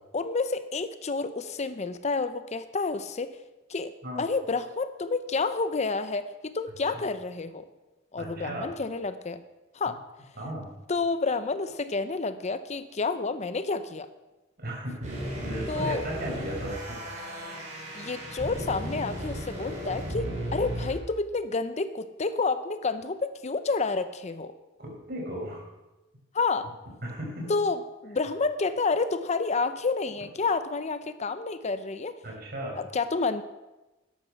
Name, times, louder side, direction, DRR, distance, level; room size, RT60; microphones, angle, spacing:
voice 1, 0.1-3.4 3.7-3.9 4.2-7.6 8.1-9.4 9.7-10.0 10.9-14.1 15.7-16.0 17.9-24.5 26.3-26.7 27.5-32.1 32.8-33.4, left 4 dB, 35° left, 12 dB, 0.6 m, -29 dB
voice 2, 8.2-8.7 10.4-10.7 14.6-17.0 24.8-25.6 27.0-27.6 32.2-32.8, right 1 dB, 55° right, -2 dB, 5.5 m, -36 dB
sound 1, 15.0-21.0, equal, 40° right, 4.4 m, -35 dB
13.0 x 10.5 x 6.0 m, 1.1 s
head